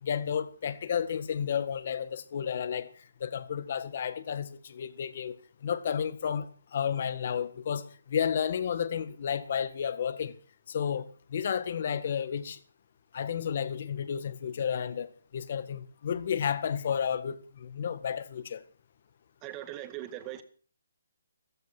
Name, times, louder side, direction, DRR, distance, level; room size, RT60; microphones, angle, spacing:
voice 1, 0.0-2.9 3.2-5.4 5.6-10.3 10.7-12.6 13.1-18.6, left 8 dB, 45° left, 1.7 m, -32 dB
voice 2, 19.4-20.4, right 13 dB, 20° right, 1.9 m, -40 dB
14.5 x 14.5 x 6.0 m
hypercardioid pair, 160°, 0 cm